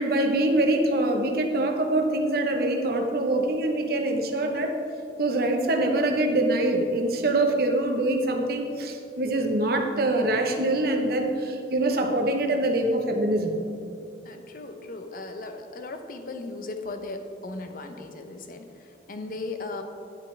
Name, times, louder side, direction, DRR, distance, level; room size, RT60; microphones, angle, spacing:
voice 1, 0.0-4.7 5.2-13.5, right 1 dB, 55° right, 3 dB, 0.9 m, -24 dB
voice 2, 14.2-19.8, left 3 dB, 50° left, 6 dB, 0.7 m, -37 dB
10.0 x 8.6 x 3.3 m, 2.6 s
head